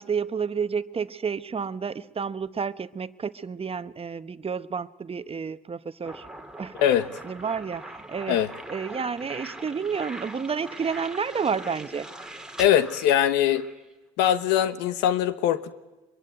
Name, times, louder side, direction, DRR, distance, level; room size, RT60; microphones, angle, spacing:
voice 1, 0.0-6.3 6.6-6.8 7.2-8.4 8.7-12.1, right 6 dB, 35° right, 1.0 m, -30 dB
sound 1, 6.1-13.9, right 1 dB, 5° right, 2.5 m, -42 dB
voice 2, 12.6-13.7 14.2-15.7, left 11 dB, 90° left, 1.2 m, -22 dB
23.5 x 23.0 x 9.2 m
supercardioid pair, 70°, 17 cm